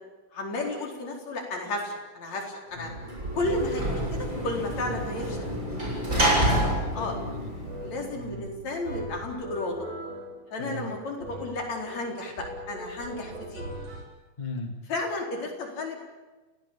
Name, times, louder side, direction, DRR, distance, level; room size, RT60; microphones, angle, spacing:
voice 1, 0.3-2.9 3.3-5.5 7.0-7.2 7.8-9.8 10.5-13.7 14.9-16.0, left 2 dB, 55° left, 1 dB, 5.5 m, -33 dB
Sliding door / Slam, 2.9-8.3, right 1 dB, 20° right, 7.1 m, -28 dB
voice 2, 6.2-7.5 8.2-8.5 10.6-11.0 14.4-14.7, left 2 dB, 15° left, 5 dB, 1.7 m, -38 dB
sound 1, 7.0-14.0, right 1 dB, 60° right, 5.0 m, -40 dB
30.0 x 18.0 x 8.7 m, 1.2 s
omnidirectional pair, 3.9 m